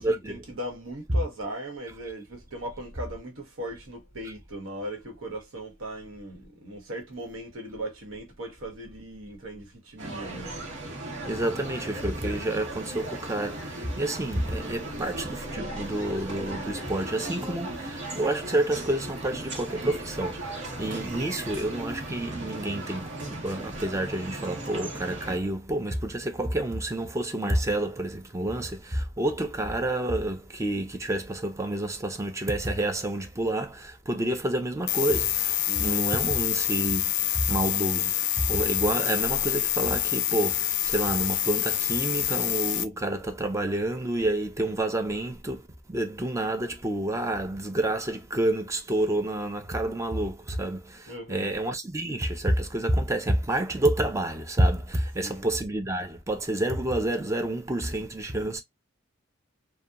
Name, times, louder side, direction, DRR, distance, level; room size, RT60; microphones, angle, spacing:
voice 1, 0.0-10.5 35.7-36.0 51.1-51.5 55.2-55.4, right 1 dB, 85° right, 1.1 m, -38 dB
sound 1, 10.0-25.4, right 1 dB, 65° right, 1.0 m, -37 dB
voice 2, 11.3-58.6, right 1 dB, 15° right, 0.4 m, -29 dB
sound 2, 34.9-42.8, left 13 dB, 60° left, 0.4 m, -27 dB
2.8 x 2.2 x 2.3 m
head